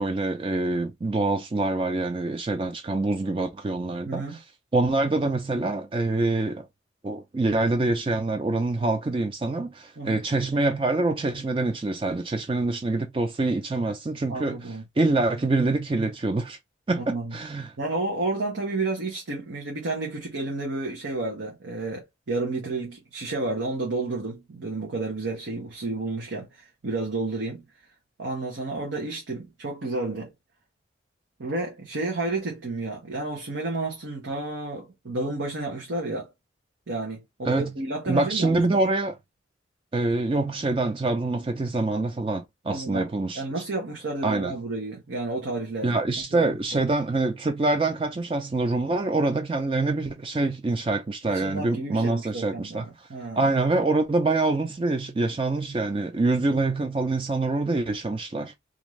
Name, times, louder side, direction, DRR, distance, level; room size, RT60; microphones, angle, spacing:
voice 1, 0.0-4.2 4.7-6.7 7.0-14.6 15.0-16.6 16.9-17.7 37.4-37.7 38.1-39.2 39.9-43.4 44.2-44.5 45.8-52.9 53.4-58.5, right 2 dB, 30° right, 0.3 m, -25 dB
voice 2, 4.0-4.4 10.0-10.2 14.3-14.8 16.9-17.3 17.8-27.6 28.2-30.3 31.4-36.3 36.9-38.8 42.7-43.1 43.3-46.0 46.3-46.4 46.7-46.8 51.2-53.4, right 2 dB, 90° right, 0.8 m, -31 dB
2.5 x 2.5 x 3.1 m
head